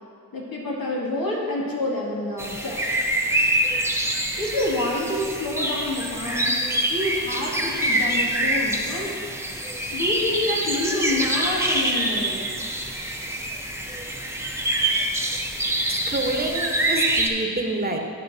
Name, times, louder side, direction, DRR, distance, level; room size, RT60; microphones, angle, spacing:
voice 1, 0.3-3.0 4.4-6.6 6.9-9.2 9.9-12.4, left 2 dB, 75° left, -5 dB, 2.3 m, -28 dB
sound 1, 2.4-17.3, right 1 dB, 5° right, 0.9 m, -25 dB
voice 2, 15.9-18.0, right 2 dB, 25° right, 3 dB, 1.1 m, -27 dB
13.0 x 6.6 x 2.8 m, 2.1 s
cardioid pair, 50°, 35 cm